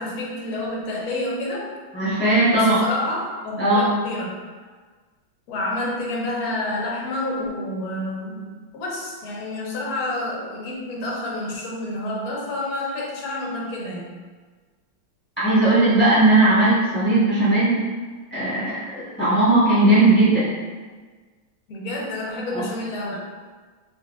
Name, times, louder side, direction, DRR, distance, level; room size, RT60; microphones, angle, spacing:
voice 1, 0.0-1.7 2.5-4.3 5.5-14.2 21.7-23.2, left 1 dB, 60° left, -4 dB, 1.0 m, -29 dB
voice 2, 1.9-2.8 3.6-3.9 15.4-17.8 18.3-18.8 19.2-20.5 22.5-22.6, right 2 dB, 10° left, -12 dB, 0.9 m, -17 dB
3.6 x 2.9 x 2.4 m, 1.4 s
omnidirectional pair, 2.2 m